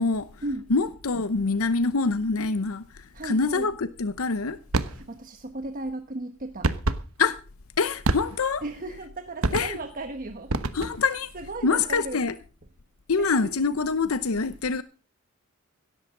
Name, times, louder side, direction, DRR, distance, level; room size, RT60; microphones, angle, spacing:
voice 1, 0.0-4.6 7.2-7.4 7.8-9.1 9.5-9.8 10.7-11.3 11.6-12.4 13.1-14.8, left 4 dB, 75° left, 0.8 m, -25 dB
voice 2, 3.1-3.7 4.7-6.7 8.6-10.5 11.1-12.2 13.2-13.5, right 2 dB, 40° right, 1.2 m, -36 dB
sound 1, 4.7-5.0 6.6-7.1 8.0-8.6 9.4-9.9 10.5-11.1, right 2 dB, 70° right, 1.2 m, -27 dB
17.0 x 13.5 x 3.8 m
head